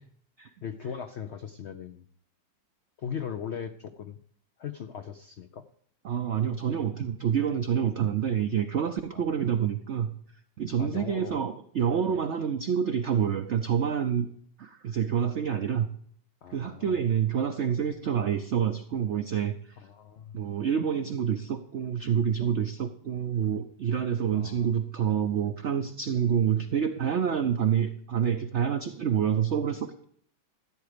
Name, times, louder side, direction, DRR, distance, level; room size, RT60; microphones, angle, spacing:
voice 1, 0.6-2.1 3.0-4.2 4.6-5.7 9.1-9.3 10.8-11.4 12.1-12.2 16.4-17.1 19.8-20.4 24.3-24.7, left 7 dB, 85° left, 8 dB, 0.5 m, -39 dB
voice 2, 6.0-10.1 10.6-14.3 14.6-15.9 16.5-19.8 20.3-30.0, right 8 dB, 65° right, 7 dB, 0.6 m, -27 dB
14.0 x 8.1 x 5.0 m, 0.63 s
omnidirectional pair, 2.0 m